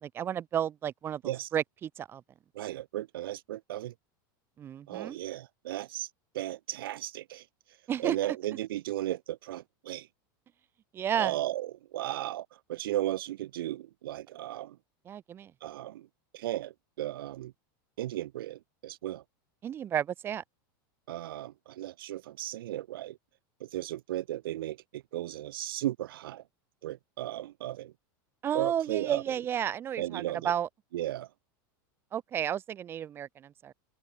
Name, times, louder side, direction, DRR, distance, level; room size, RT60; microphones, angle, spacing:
voice 1, 0.0-2.2 4.6-5.2 7.9-8.2 10.9-11.4 15.1-15.5 19.6-20.4 28.4-30.7 32.1-33.7, right 9 dB, 20° right, 2.0 m, -32 dB
voice 2, 2.5-3.9 4.9-6.1 6.3-7.4 8.0-10.1 11.1-14.8 15.6-16.1 16.3-17.5 18.0-19.2 21.1-23.2 23.6-26.4 26.8-27.9 28.5-29.2 30.0-30.5 30.9-31.3, right 14 dB, 90° right, 4.5 m, -35 dB
open air
supercardioid pair, 170°, 11 cm